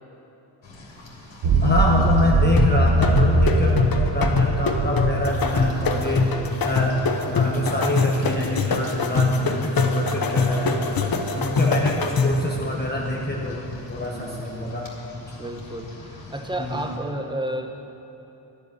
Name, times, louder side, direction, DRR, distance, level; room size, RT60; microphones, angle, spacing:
Rain, 0.6-17.0, left 2 dB, 65° left, 2.8 m, -36 dB
sound 1, 1.4-6.5, right 3 dB, 85° right, 1.2 m, -22 dB
voice 1, 1.6-6.2 6.6-10.8 11.3-14.9 15.1-15.3 16.6-16.8, left 2 dB, 20° left, -3 dB, 1.2 m, -26 dB
sound 2, 2.6-12.5, left 3 dB, 50° left, 1.0 m, -23 dB
voice 2, 6.0-6.8 9.0-9.8 10.0-10.5 11.0-11.8 14.0-15.0 15.4-17.7, right 1 dB, 10° right, 4 dB, 1.1 m, -34 dB
11.0 x 7.1 x 9.7 m, 2.9 s
cardioid pair, 90°, 47 cm